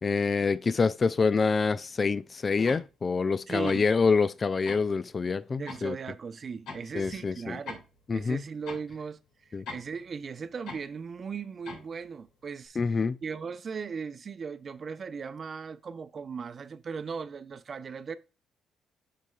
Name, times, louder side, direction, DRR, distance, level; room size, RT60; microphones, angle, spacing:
voice 1, 0.0-6.0 6.9-7.6 8.1-8.4 9.5-9.6 12.8-13.2, left 4 dB, 35° left, 0.4 m, -26 dB
sound 1, 2.7-2.9 3.7-3.9 4.7-4.9 5.7-5.8 6.7-6.9 7.7-7.9 8.7-8.8 9.7-9.9 10.7-10.9 11.7-11.9, left 3 dB, 85° left, 2.3 m, -41 dB
voice 2, 3.5-3.9 5.6-7.9 8.1-18.2, right 5 dB, 45° right, 0.7 m, -38 dB
7.5 x 6.8 x 2.3 m
cardioid pair, 90°, 0 cm